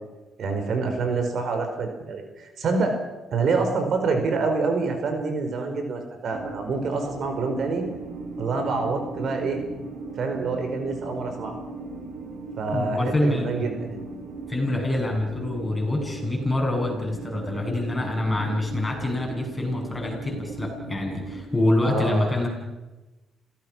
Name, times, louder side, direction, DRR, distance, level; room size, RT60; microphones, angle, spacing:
voice 1, 0.4-3.0 3.3-7.8 8.4-9.6 10.2-11.6 12.6-14.0 21.8-22.3, right 4 dB, 60° right, 5 dB, 4.6 m, -26 dB
sound 1, 6.3-21.4, right 3 dB, 80° right, 5.3 m, -37 dB
voice 2, 12.7-13.7 14.5-22.5, left 1 dB, 15° left, 0 dB, 7.8 m, -26 dB
27.5 x 17.0 x 6.3 m, 1.1 s
cardioid pair, 90°, 0 cm